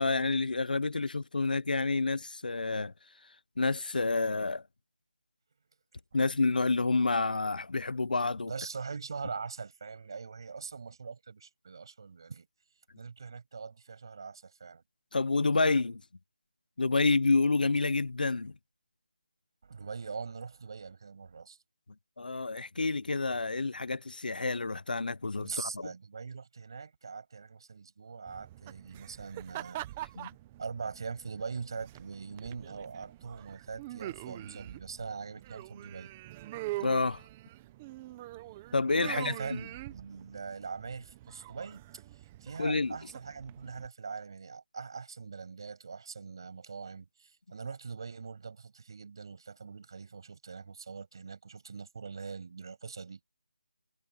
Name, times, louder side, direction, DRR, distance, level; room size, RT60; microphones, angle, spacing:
voice 1, 0.0-2.9 3.6-4.6 6.1-8.5 15.1-16.0 16.8-18.5 22.2-25.9 30.2-30.3 36.8-37.2 38.7-39.6 42.6-43.0, left 3 dB, 80° left, 0.5 m, -29 dB
voice 2, 8.5-12.5 12.9-14.8 19.6-21.6 25.4-29.8 30.6-36.1 39.0-41.8 42.1-53.3, right 5 dB, 30° right, 6.8 m, -42 dB
sound 1, 28.3-43.9, right 16 dB, 5° right, 0.5 m, -44 dB
figure-of-eight pair, 180°, 5 cm